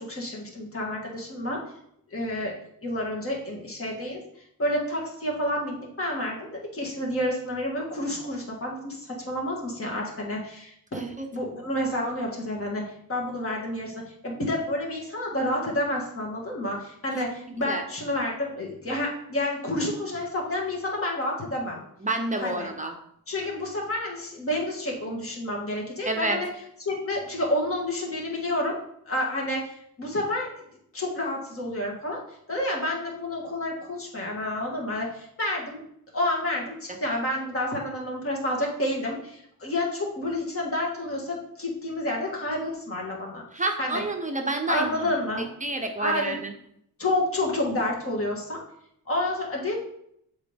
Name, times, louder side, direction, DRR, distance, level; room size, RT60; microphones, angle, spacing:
voice 1, 0.0-1.6 2.1-2.5 2.8-4.2 4.6-11.0 11.3-21.8 22.4-22.7 23.3-26.5 26.8-28.8 29.1-30.5 30.9-32.2 32.5-35.8 36.1-43.4 43.8-44.0 44.7-45.5 46.0-46.4 47.0-48.6 49.1-49.8, left 1 dB, 40° left, -2 dB, 1.8 m, -29 dB
voice 2, 10.9-11.3 17.1-17.8 22.0-22.9 26.1-26.4 43.5-45.1 45.6-46.5, right 2 dB, 20° right, 3 dB, 0.7 m, -29 dB
7.4 x 4.2 x 3.5 m, 0.73 s
cardioid pair, 115°, 36 cm